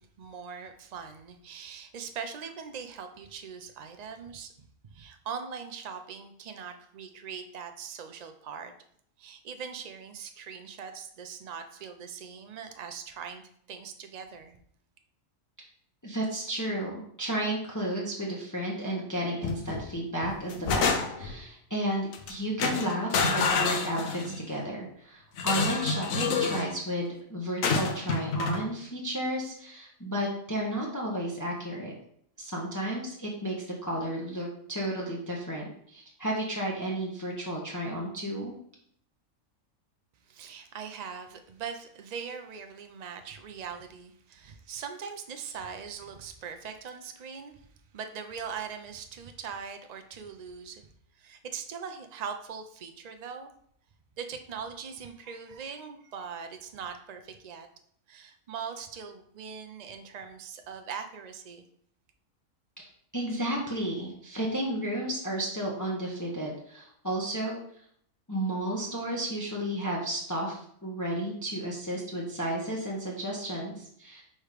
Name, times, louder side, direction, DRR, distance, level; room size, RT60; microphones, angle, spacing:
voice 1, 0.2-4.5 4.9-8.7 9.2-13.4 13.7-14.6 40.2-47.7 47.9-50.9 51.1-53.5 54.2-57.7 58.1-61.6, right 6 dB, 75° right, 6 dB, 0.3 m, -41 dB
voice 2, 16.0-31.9 32.4-33.6 33.8-38.6 62.8-62.9 63.1-67.6 68.3-74.2, right 1 dB, 15° left, -3 dB, 0.9 m, -32 dB
sound 1, 19.4-19.8 20.2-21.4 22.1-22.3 22.6-24.4 25.4-26.7 27.6-28.6, left 4 dB, 75° left, 1.2 m, -28 dB
4.8 x 4.3 x 4.9 m, 0.66 s
omnidirectional pair, 1.5 m